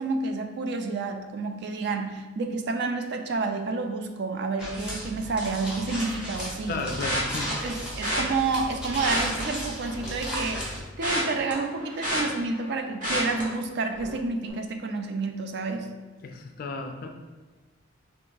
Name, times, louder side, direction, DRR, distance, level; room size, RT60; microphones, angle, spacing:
voice 1, 0.0-6.8 7.6-10.7 11.0-15.9, right 3 dB, 55° right, 6 dB, 0.4 m, -29 dB
sound 1, 4.6-10.8, equal, 5° right, 0.8 m, -35 dB
voice 2, 6.7-7.6 16.2-17.1, left 3 dB, 45° left, 4 dB, 0.3 m, -33 dB
sound 2, 7.0-7.5 8.0-8.2 8.9-10.2 10.5-12.7 13.0-13.4 13.9-14.2 14.4-14.5, equal, 40° right, 1.2 m, -30 dB
3.4 x 2.9 x 3.9 m, 1.3 s
head